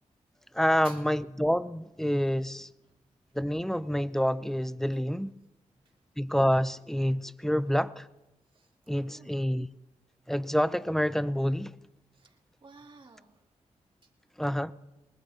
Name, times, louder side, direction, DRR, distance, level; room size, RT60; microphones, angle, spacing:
voice 1, 0.5-2.7 3.3-5.3 6.2-8.1 8.9-9.7 10.3-11.7 14.4-14.7, equal, 5° left, 0.6 m, -27 dB
voice 2, 9.0-9.5 12.1-13.4 14.0-14.1, right 3 dB, 40° right, 2.6 m, -53 dB
23.0 x 20.0 x 2.9 m
cardioid pair, 65°, 13 cm